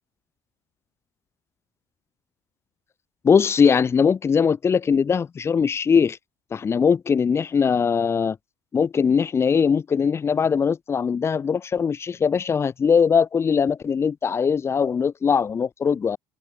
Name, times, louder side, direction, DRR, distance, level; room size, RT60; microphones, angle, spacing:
voice 1, 3.2-6.2 6.5-8.4 8.7-16.2, left 6 dB, 30° left, 3.0 m, -21 dB
cardioid pair, 110°, 8 cm